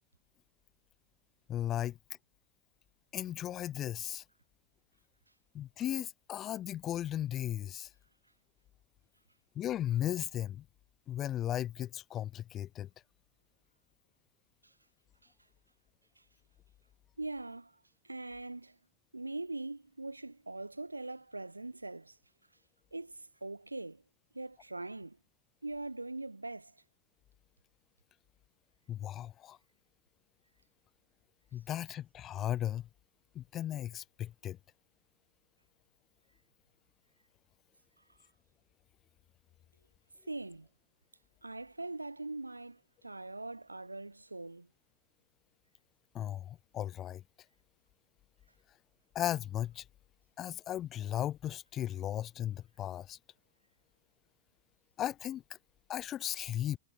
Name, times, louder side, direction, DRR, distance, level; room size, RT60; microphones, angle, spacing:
voice 1, 1.5-2.0 3.1-4.2 5.5-7.9 9.6-10.6 11.1-12.9 28.9-29.6 31.5-32.9 33.3-34.6 46.1-47.2 49.1-49.8 50.4-53.2 55.0-55.4 55.9-56.8, left 11 dB, 30° left, 0.6 m, -36 dB
voice 2, 17.2-17.8 18.0-18.8 19.1-22.2 22.9-24.0 24.3-25.2 25.6-26.7 40.3-40.7 41.4-44.7, right 2 dB, 85° right, 3.0 m, -42 dB
figure-of-eight pair, 90°, 0 cm